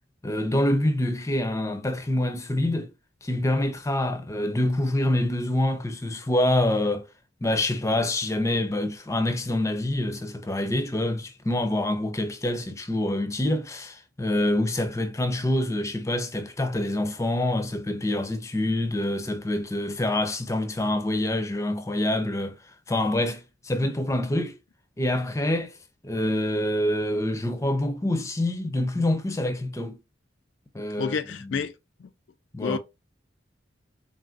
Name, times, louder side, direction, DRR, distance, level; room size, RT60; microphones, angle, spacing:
voice 1, 0.2-2.9 3.2-7.1 7.4-22.5 22.9-24.6 25.0-25.7 26.0-30.0 30.7-31.1 31.5-31.6 32.5-32.8, left 1 dB, 15° left, 0.6 m, -26 dB
voice 2, 31.0-31.7 32.0-32.1 32.6-32.8, left 6 dB, 65° left, 0.4 m, -29 dB
3.9 x 3.8 x 2.4 m
head